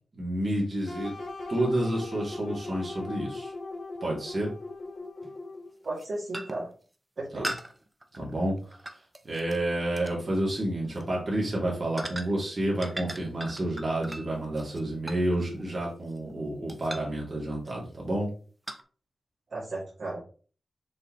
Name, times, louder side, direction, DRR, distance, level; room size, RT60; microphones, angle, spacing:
voice 1, 0.1-1.1 1.5-3.5 4.0-4.5 7.3-7.5 8.1-8.5 9.2-18.3, right 1 dB, 35° right, -3 dB, 2.8 m, -29 dB
sound 1, 0.9-5.8, left 2 dB, 70° left, 2.9 m, -39 dB
sound 2, 1.4-1.5 4.0-4.1 5.2-5.4 5.8-6.1 6.3-6.7 7.4-9.6 10.0-10.2 10.8-11.1 12.0-12.5 12.8-16.3 16.7-17.2 17.7-18.0 18.7-18.8, right 1 dB, 15° right, 0.7 m, -40 dB
voice 2, 5.8-6.7 7.2-7.5 19.5-20.2, right 2 dB, 55° right, -6 dB, 2.4 m, -34 dB
6.4 x 5.0 x 3.1 m, 0.40 s
wide cardioid pair, 120°, 0 cm